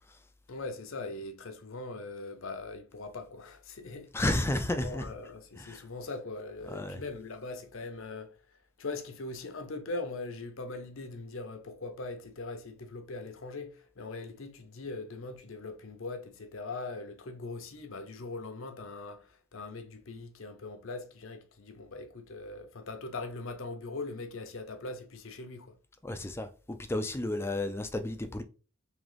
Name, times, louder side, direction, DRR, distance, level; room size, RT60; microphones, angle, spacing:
voice 1, 0.5-4.1 4.7-8.4 8.8-25.7, left 3 dB, 60° left, 0.7 m, -41 dB
voice 2, 4.1-5.1 5.6-5.8 6.7-7.0 26.0-28.4, left 1 dB, 10° left, 0.3 m, -32 dB
3.7 x 2.9 x 3.3 m
head